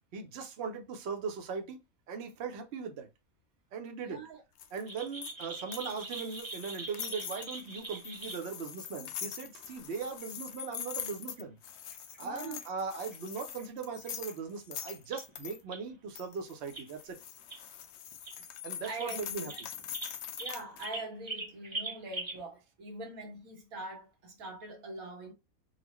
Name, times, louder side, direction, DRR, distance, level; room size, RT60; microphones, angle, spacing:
voice 1, 0.1-1.8 2.1-3.1 3.7-4.2 4.7-11.6 12.2-17.2 18.6-19.5, right 5 dB, 55° right, 0.9 m, -39 dB
voice 2, 4.0-4.4 9.7-9.8 12.2-12.6 18.9-19.5 20.4-25.3, right 2 dB, 85° right, 1.5 m, -43 dB
sound 1, 4.6-15.6 16.2-20.9, left 9 dB, 65° left, 0.7 m, -43 dB
sound 2, 4.9-8.4 9.6-9.7 10.2-10.3 10.6-10.7 11.0-11.1 11.4-11.5 11.9-12.6 13.1-13.6 14.0-14.3 14.9-15.3 15.7-15.8 16.7-16.9 17.5-17.6 18.1-18.4 18.8-19.1 19.5-22.4, right 2 dB, 25° right, 0.7 m, -42 dB
4.1 x 2.2 x 2.9 m
omnidirectional pair, 1.4 m